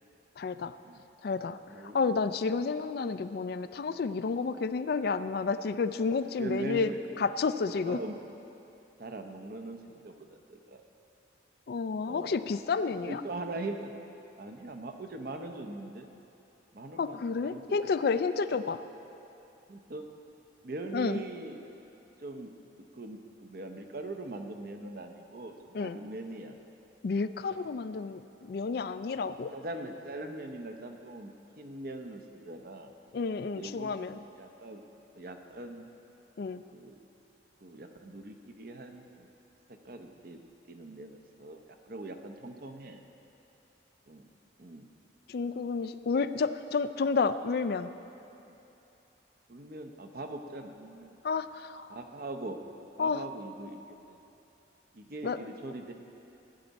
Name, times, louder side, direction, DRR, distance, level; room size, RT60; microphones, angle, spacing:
voice 1, 0.4-0.8 1.2-1.6 1.9-6.9 7.2-8.0 11.7-13.2 17.0-18.8 20.9-21.2 25.7-26.0 27.0-29.5 33.1-34.2 36.4-36.6 45.3-47.9 51.2-52.0 53.0-53.3 55.2-55.4, left 4 dB, 55° left, 12 dB, 0.3 m, -30 dB
voice 2, 6.4-7.0 7.9-8.2 9.0-10.8 12.1-12.3 13.0-13.9 14.4-16.1 16.7-17.6 19.7-20.1 20.6-21.6 22.2-22.5 22.9-26.5 29.5-32.9 33.5-34.8 35.2-35.9 36.7-37.0 37.6-39.3 39.8-40.4 40.7-43.0 44.1-44.3 44.6-44.9 48.5-48.6 49.5-51.1 51.9-52.6 53.0-53.8 54.1-54.2 54.9-55.9, right 2 dB, 55° right, 5 dB, 0.7 m, -41 dB
15.0 x 10.5 x 4.1 m, 2.9 s
head